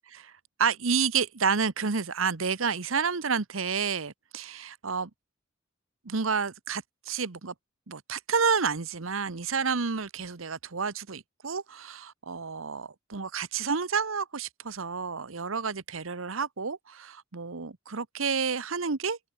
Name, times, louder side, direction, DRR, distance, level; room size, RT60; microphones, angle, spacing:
voice 1, 0.6-5.1 6.0-7.5 7.9-19.2, right 5 dB, 90° right, 1.1 m, -30 dB
open air
head